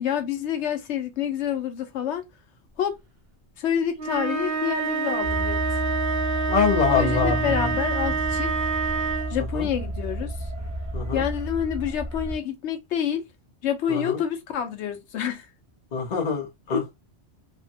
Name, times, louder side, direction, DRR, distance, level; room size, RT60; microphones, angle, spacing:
voice 1, 0.0-2.3 2.8-3.0 3.6-5.8 6.9-8.5 8.9-9.0 9.3-10.5 11.1-13.3 13.6-15.5, left 9 dB, 80° left, 0.9 m, -28 dB
sound 1, 4.0-9.4, right 5 dB, 65° right, 0.9 m, -27 dB
sound 2, 5.2-12.4, right 1 dB, 20° right, 0.5 m, -31 dB
voice 2, 6.5-7.5 9.5-9.7 10.9-11.2 13.9-14.2 15.9-17.0, left 5 dB, 40° left, 0.9 m, -24 dB
3.3 x 2.1 x 2.6 m
omnidirectional pair, 1.2 m